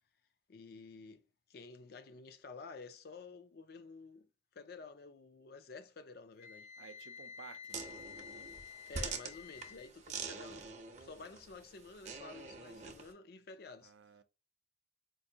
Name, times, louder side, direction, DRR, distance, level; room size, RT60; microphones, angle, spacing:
voice 1, 0.5-1.2 1.5-4.3 4.5-6.7 8.9-10.7 11.0-13.9, left 4 dB, 55° left, 0.4 m, -51 dB
Wind instrument woodwind instrument, 6.4-9.9, left 7 dB, 85° left, 1.0 m, -51 dB
voice 2, 6.8-8.1 13.8-14.2, right 6 dB, 80° right, 0.4 m, -55 dB
sound 1, 7.7-13.1, right 5 dB, 40° right, 0.6 m, -45 dB
4.5 x 2.6 x 2.7 m
head